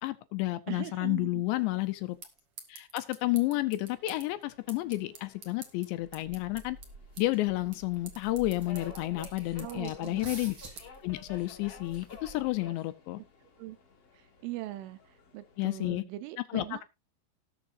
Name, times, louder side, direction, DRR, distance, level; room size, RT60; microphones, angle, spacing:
voice 1, 0.0-2.2 2.7-6.8 7.2-10.6 11.0-13.2 15.6-16.0 16.5-16.8, left 18 dB, 80° left, 2.7 m, -31 dB
voice 2, 0.7-1.4 9.6-10.4 13.6-13.8 14.4-15.0 15.3-16.8, right 16 dB, 90° right, 3.5 m, -40 dB
sound 1, 1.6-12.1, right 5 dB, 55° right, 1.7 m, -53 dB
Subway metro underground, 3.9-15.9, left 4 dB, 40° left, 2.3 m, -53 dB
sound 2, 6.0-12.7, right 2 dB, 30° right, 2.9 m, -50 dB
19.0 x 7.2 x 2.6 m
omnidirectional pair, 5.5 m